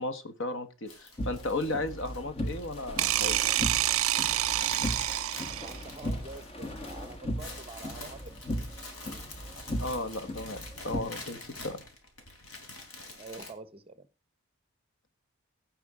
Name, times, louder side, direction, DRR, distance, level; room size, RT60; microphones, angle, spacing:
voice 1, 0.0-3.4 9.8-11.8, left 2 dB, 60° left, 10 dB, 1.4 m, -35 dB
sound 1, 0.9-13.5, left 2 dB, 75° left, 3.5 m, -47 dB
sound 2, 1.2-11.0, equal, 25° left, 1.3 m, -37 dB
sound 3, 3.0-5.9, right 14 dB, 70° right, 0.5 m, -28 dB
voice 2, 5.5-8.4 13.2-14.1, right 3 dB, 25° right, 13 dB, 1.0 m, -46 dB
16.5 x 5.5 x 4.9 m, 0.32 s
head